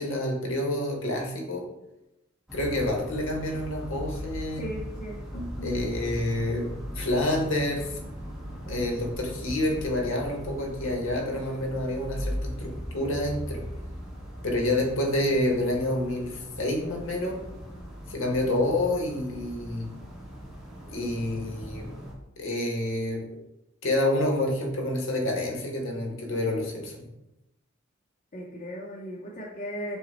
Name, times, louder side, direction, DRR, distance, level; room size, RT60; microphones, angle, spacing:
voice 1, 0.0-1.7 2.5-4.7 5.3-6.7 6.9-8.0 8.7-13.6 14.4-17.4 18.1-19.9 20.9-21.9 22.4-23.2 23.8-27.1, left 1 dB, 65° left, 1 dB, 1.0 m, -28 dB
sound 1, 2.5-22.1, equal, ahead, 0.8 m, -39 dB
voice 2, 4.6-5.3 28.3-30.0, equal, 35° left, -3 dB, 0.6 m, -37 dB
5.4 x 2.0 x 4.1 m, 0.91 s
head